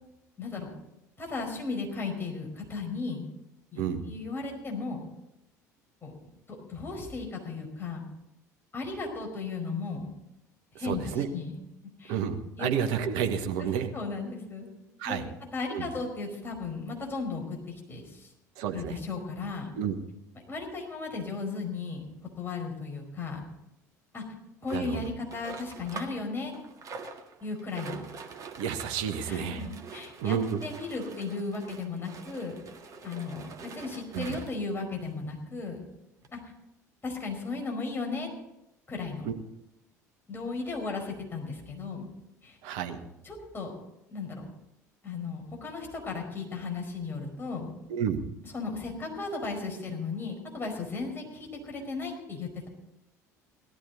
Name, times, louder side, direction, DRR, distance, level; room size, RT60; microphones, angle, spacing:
voice 1, 0.4-0.7 1.2-3.2 3.7-5.0 6.0-6.1 6.5-8.0 8.7-10.1 10.8-11.6 12.0-12.2 12.6-12.7 13.9-14.7 15.0-15.2 15.5-18.3 18.7-19.7 20.5-22.0 22.4-23.4 24.1-24.2 24.6-26.5 27.4-28.1 29.2-32.6 33.0-35.8 36.3-36.4 37.0-38.3 38.9-39.3 40.3-42.1 42.4-42.6 43.2-43.7 44.1-44.4 45.0-47.7 48.5-52.7, left 4 dB, 25° left, 1 dB, 4.8 m, -35 dB
voice 2, 10.8-11.3 12.1-13.9 15.0-15.3 15.7-15.9 18.6-19.0 19.7-20.0 24.7-25.0 28.6-29.6 30.2-30.6 34.1-34.4 39.2-39.3 42.6-43.0 47.9-48.2, right 8 dB, 60° right, 7 dB, 1.3 m, -30 dB
sound 1, 24.7-26.2 26.5-34.7 35.4-35.5 35.7-35.8 36.2-36.3, right 5 dB, 40° right, 1.7 m, -45 dB
18.0 x 13.0 x 4.0 m, 0.88 s
figure-of-eight pair, 60°, 9 cm